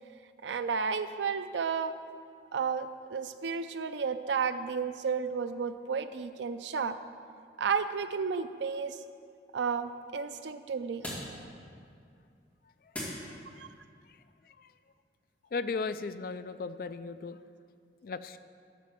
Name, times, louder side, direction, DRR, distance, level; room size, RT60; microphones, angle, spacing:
voice 1, 0.4-1.9 2.5-7.0 7.6-9.0 9.5-11.0 13.6-13.7, right 5 dB, 85° right, 11 dB, 0.5 m, -32 dB
sound 1, 7.8-13.8, equal, 10° left, 2.3 m, -46 dB
voice 2, 12.8-13.6 14.1-14.7 15.5-17.4 18.0-18.4, left 4 dB, 50° left, 12 dB, 0.3 m, -38 dB
12.5 x 4.4 x 6.9 m, 2.3 s
head